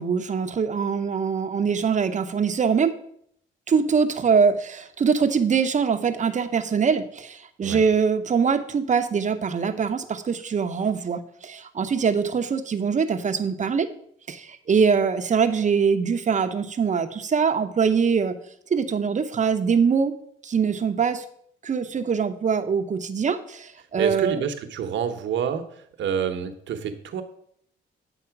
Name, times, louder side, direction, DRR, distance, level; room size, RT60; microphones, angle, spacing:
voice 1, 0.0-2.9 3.7-13.9 14.3-18.4 18.7-20.1 20.4-21.2 21.6-24.4, right 6 dB, 40° right, 8 dB, 0.8 m, -23 dB
voice 2, 24.0-25.7 26.0-27.2, right 7 dB, 70° right, 7 dB, 1.0 m, -27 dB
9.0 x 4.2 x 5.9 m, 0.67 s
cardioid pair, 90°, 20 cm